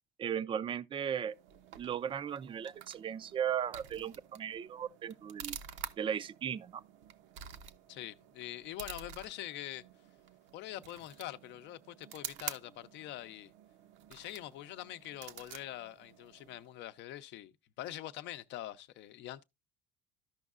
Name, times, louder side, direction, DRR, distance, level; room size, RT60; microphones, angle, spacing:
voice 1, 0.2-1.3 1.8-5.6 6.0-6.8, right 8 dB, 25° right, 0.4 m, -36 dB
sound 1, 1.2-16.8, right 9 dB, 65° right, 0.7 m, -49 dB
voice 2, 7.9-9.8 10.5-13.5 14.1-17.5 17.8-19.4, left 13 dB, 60° left, 0.7 m, -44 dB
13.5 x 5.4 x 2.4 m
supercardioid pair, 110°, 20 cm